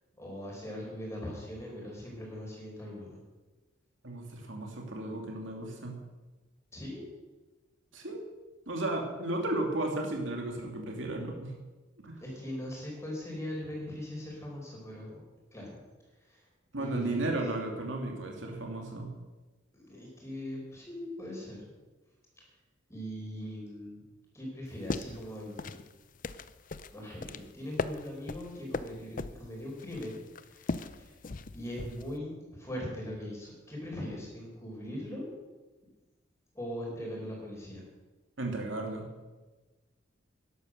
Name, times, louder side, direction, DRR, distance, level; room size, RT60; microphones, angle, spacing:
voice 1, 0.2-3.2 6.7-7.0 12.2-15.2 15.5-15.8 16.2-16.5 16.7-17.3 19.7-21.6 22.9-24.0 24.3-25.8 26.9-31.1 31.5-35.3 36.5-37.8, left 1 dB, 15° left, -2 dB, 5.1 m, -40 dB
voice 2, 4.0-6.0 7.9-8.2 8.7-11.5 12.0-12.2 16.7-19.1 38.4-39.1, right 2 dB, 75° right, 1 dB, 2.7 m, -34 dB
sound 1, 24.7-32.2, left 3 dB, 45° left, 0.6 m, -39 dB
13.0 x 11.5 x 6.7 m, 1.2 s
head